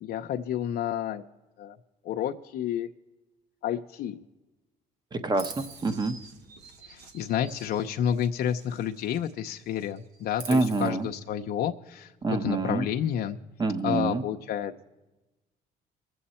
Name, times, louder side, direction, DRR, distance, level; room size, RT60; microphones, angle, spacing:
voice 1, 0.0-1.2 1.6-1.8 2.0-2.9 3.6-4.2 6.9-13.4 13.8-14.8, left 9 dB, 65° left, 5 dB, 0.6 m, -30 dB
voice 2, 5.1-6.1 10.5-11.1 12.2-12.8 13.6-14.2, right 3 dB, 25° right, 11 dB, 1.0 m, -27 dB
Chirp tweet, 5.3-9.4 9.7-10.9, right 5 dB, 85° right, 1.5 m, -46 dB
21.5 x 7.8 x 4.2 m, 1.1 s
cardioid pair, 110°, 17 cm